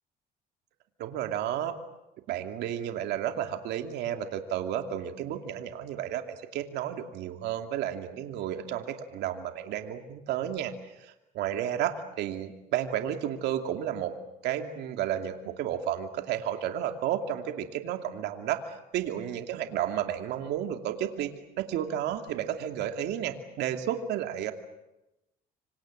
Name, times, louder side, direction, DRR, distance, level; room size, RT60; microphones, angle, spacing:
voice 1, 1.0-1.8 2.3-14.1 14.4-24.5, right 10 dB, 80° right, 5 dB, 2.6 m, -32 dB
26.5 x 25.5 x 7.7 m, 0.94 s
cardioid pair, 110°, 17 cm